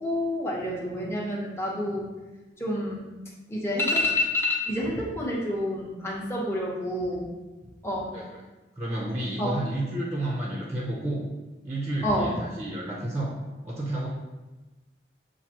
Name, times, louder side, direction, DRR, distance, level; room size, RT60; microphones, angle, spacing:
voice 1, 0.0-2.1 2.6-3.1 3.5-7.3 7.8-8.1 9.4-9.5 12.0-12.3, left 1 dB, 15° left, -4 dB, 0.8 m, -28 dB
voice 2, 8.8-11.2 11.6-13.3 13.6-14.1, right 1 dB, 15° right, -4 dB, 0.6 m, -31 dB
7.3 x 2.6 x 2.9 m, 1.2 s
head